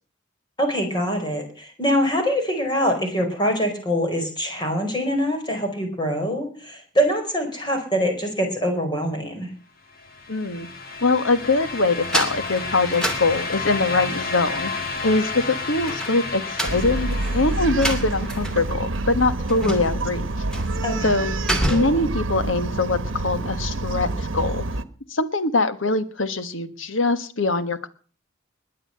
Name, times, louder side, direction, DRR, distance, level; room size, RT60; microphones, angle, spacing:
voice 1, 0.6-9.5 20.8-21.2, equal, 20° left, 4 dB, 4.8 m, -24 dB
sound 1, 9.9-18.8, left 4 dB, 50° left, 2.9 m, -32 dB
voice 2, 10.3-10.7 11.0-14.7 15.0-20.2 21.0-21.3 21.7-24.6 25.1-27.9, left 3 dB, 75° left, 12 dB, 1.4 m, -23 dB
sound 2, 12.0-14.0 15.8-18.7 18.9-19.0 19.5-20.1 20.5-20.8 21.1-22.1, right 1 dB, 5° left, 2.6 m, -28 dB
Bark, 16.6-24.8, right 2 dB, 75° right, 1.1 m, -27 dB
21.0 x 7.6 x 7.8 m, 0.42 s
head